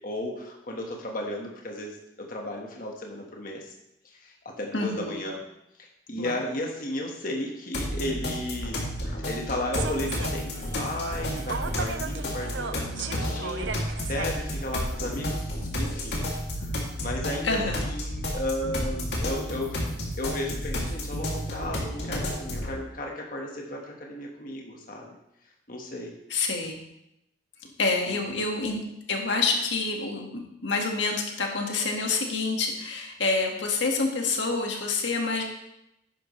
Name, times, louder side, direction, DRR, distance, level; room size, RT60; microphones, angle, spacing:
voice 1, 0.0-3.7 4.0-5.4 5.8-8.8 9.2-16.2 16.6-19.8 20.2-25.1 25.7-26.1 28.1-28.4, left 1 dB, 50° left, 0 dB, 1.5 m, -34 dB
voice 2, 4.7-5.2 6.2-6.3 9.1-9.2 17.4-17.9 26.3-26.8 27.8-28.8 29.1-35.4, left 3 dB, 90° left, 1 dB, 1.9 m, -27 dB
sound 1, 7.7-22.7, left 1 dB, 65° left, 2.6 m, -31 dB
Human voice / Subway metro underground, 9.7-15.4, right 6 dB, 85° right, 0.6 m, -37 dB
12.0 x 10.0 x 3.3 m, 0.83 s
head